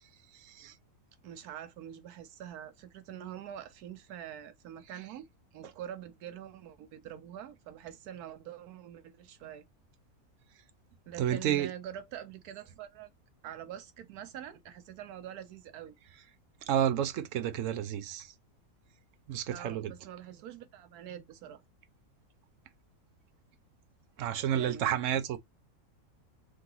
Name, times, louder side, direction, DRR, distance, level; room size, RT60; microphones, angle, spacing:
voice 1, 0.4-0.7 11.2-11.7 16.7-18.3 19.3-19.9 24.2-25.4, right 10 dB, 65° right, 1.0 m, -30 dB
voice 2, 1.2-5.3 5.5-9.6 11.1-13.1 13.4-15.9 19.5-21.6 24.5-25.2, right 10 dB, 85° right, 1.2 m, -45 dB
3.8 x 2.8 x 3.8 m
omnidirectional pair, 1.6 m